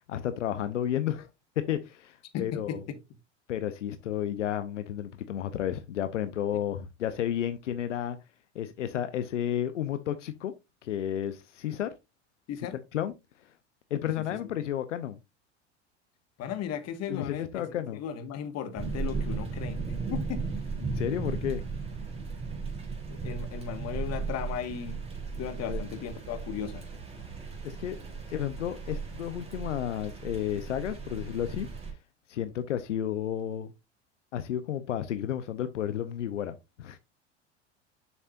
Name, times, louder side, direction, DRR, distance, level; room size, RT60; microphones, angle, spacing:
voice 1, 0.1-1.3 1.6-2.8 3.5-8.2 8.5-10.5 10.8-11.9 12.9-13.1 13.9-15.2 17.1-18.0 20.8-21.6 25.7-25.8 27.6-28.0 28.3-31.7 32.3-33.7 34.3-37.0, left 10 dB, 90° left, 0.7 m, -32 dB
voice 2, 2.3-2.8 12.5-12.7 16.4-19.8 20.1-20.4 23.2-25.0 25.4-26.8, left 8 dB, 45° left, 1.6 m, -36 dB
sound 1, 18.8-31.9, right 4 dB, 15° right, 3.1 m, -36 dB
7.3 x 6.6 x 2.5 m
hypercardioid pair, 90°, 36 cm